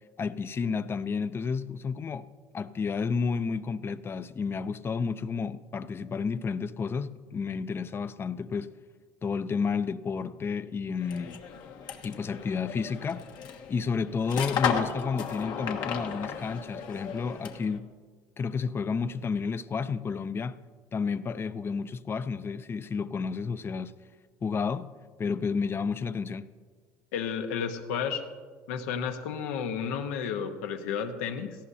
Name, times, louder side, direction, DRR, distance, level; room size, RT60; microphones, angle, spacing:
voice 1, 0.2-8.7 9.2-11.4 12.0-13.2 13.7-17.9 18.4-20.6 20.9-23.9 24.4-24.9 25.2-26.5, left 5 dB, 30° left, 0.5 m, -31 dB
sound 1, 11.0-17.8, left 7 dB, 60° left, 1.3 m, -34 dB
voice 2, 27.1-28.2 28.7-31.6, left 7 dB, 85° left, 1.1 m, -32 dB
17.5 x 14.5 x 2.8 m
supercardioid pair, 95°, 8 cm